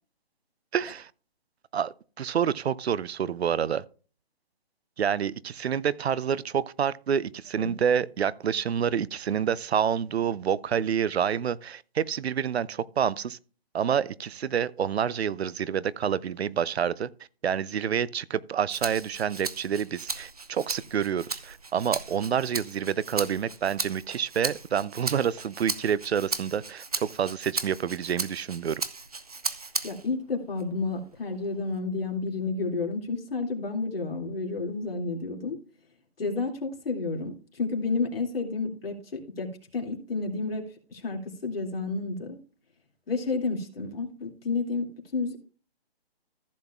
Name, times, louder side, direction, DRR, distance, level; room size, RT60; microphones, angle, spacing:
voice 1, 0.7-1.1 1.7-3.8 5.0-13.4 13.7-17.1 17.4-28.8, right 8 dB, 85° right, 0.6 m, -28 dB
Rattle (instrument), 18.7-30.1 30.6-31.8, right 3 dB, 40° right, 0.6 m, -36 dB
voice 2, 29.8-35.6 36.2-40.6 40.9-42.4 43.1-44.9 45.1-45.4, left 3 dB, 65° left, 2.4 m, -31 dB
14.5 x 7.4 x 2.3 m
hypercardioid pair, 180°, 31 cm